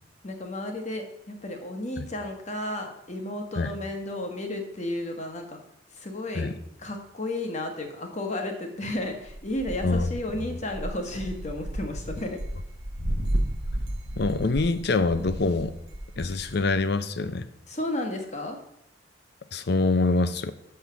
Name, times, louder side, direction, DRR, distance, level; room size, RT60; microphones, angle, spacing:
voice 1, 0.2-5.6 5.9-6.5 6.8-12.4 17.7-18.6, left 1 dB, 40° left, 4 dB, 1.3 m, -33 dB
sound 1, 9.2-16.7, right 1 dB, 65° right, 0.9 m, -33 dB
voice 2, 9.8-10.5 13.0-13.2 14.2-15.7 16.2-17.5 19.5-20.5, left 3 dB, 60° left, 13 dB, 0.6 m, -25 dB
6.2 x 5.7 x 6.9 m, 0.79 s
head